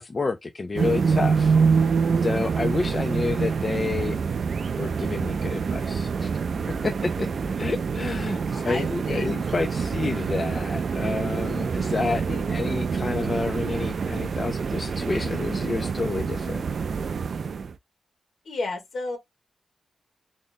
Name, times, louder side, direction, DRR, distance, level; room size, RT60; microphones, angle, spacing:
voice 1, 0.0-1.6 2.2-4.2 4.8-6.3 6.8-7.3 7.6-12.2 12.5-16.6, left 3 dB, 35° left, 0.4 m, -29 dB
sound 1, 0.7-17.7, right 5 dB, 65° right, 0.3 m, -26 dB
voice 2, 2.8-3.2 7.6-7.7 8.0-9.3 12.3-12.5 18.4-19.2, left 3 dB, 70° left, 1.4 m, -34 dB
3.5 x 2.1 x 3.9 m
wide cardioid pair, 125°, 0 cm